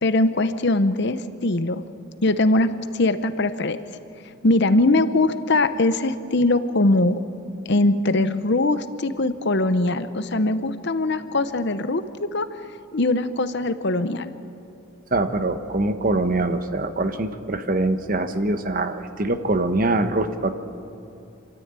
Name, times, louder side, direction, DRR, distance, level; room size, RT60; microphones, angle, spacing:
voice 1, 0.0-1.8 2.2-4.0 4.4-7.2 7.7-12.5 12.9-14.3, left 2 dB, 55° left, 11 dB, 0.8 m, -21 dB
voice 2, 15.1-20.5, right 2 dB, 40° right, 8 dB, 1.1 m, -23 dB
26.0 x 13.5 x 9.0 m, 2.8 s
head